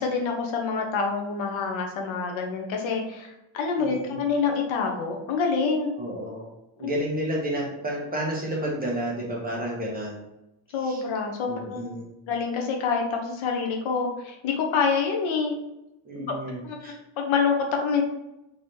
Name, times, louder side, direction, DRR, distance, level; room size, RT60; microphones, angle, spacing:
voice 1, 0.0-5.9 6.8-6.9 10.7-11.9 12.3-15.6 16.1-16.3 16.6-16.8 17.2-18.0, left 5 dB, 85° left, 2 dB, 0.9 m, -26 dB
voice 2, 3.8-4.3 6.0-6.5 6.8-10.2 10.8-11.0 11.5-12.1 16.0-16.9, right 1 dB, 20° right, -3 dB, 1.0 m, -31 dB
3.9 x 2.9 x 3.2 m, 0.90 s
cardioid pair, 145°, 46 cm